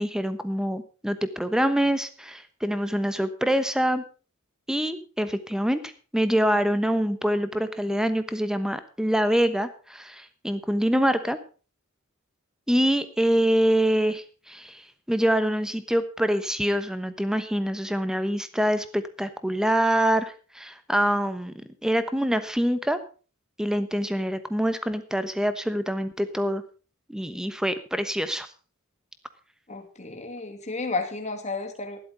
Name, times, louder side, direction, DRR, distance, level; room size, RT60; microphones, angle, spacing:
voice 1, 0.0-4.0 4.7-11.4 12.7-14.8 15.1-21.5 21.8-23.0 23.6-26.6 27.1-28.5, equal, 5° right, 11 dB, 1.1 m, -25 dB
voice 2, 29.7-32.0, left 3 dB, 35° left, 4 dB, 2.5 m, -32 dB
12.5 x 11.0 x 5.1 m, 0.36 s
head